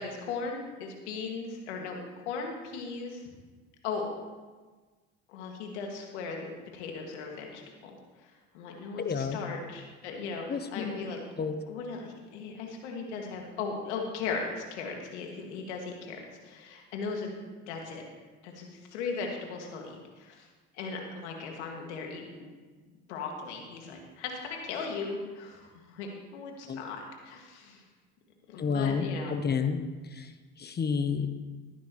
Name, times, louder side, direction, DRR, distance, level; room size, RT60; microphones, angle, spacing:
voice 1, 0.0-2.0 2.3-3.2 3.8-4.1 5.3-8.0 8.5-11.2 11.7-17.3 17.7-18.0 18.4-20.5 20.7-22.5 23.1-27.8 28.5-29.4, left 4 dB, 90° left, 1 dB, 2.2 m, -37 dB
voice 2, 9.0-9.4 10.5-10.9 11.4-11.5 26.7-26.8 28.6-29.8 30.6-31.3, left 6 dB, 30° left, 9 dB, 1.0 m, -29 dB
14.5 x 11.5 x 3.1 m, 1.3 s
supercardioid pair, 80°, 33 cm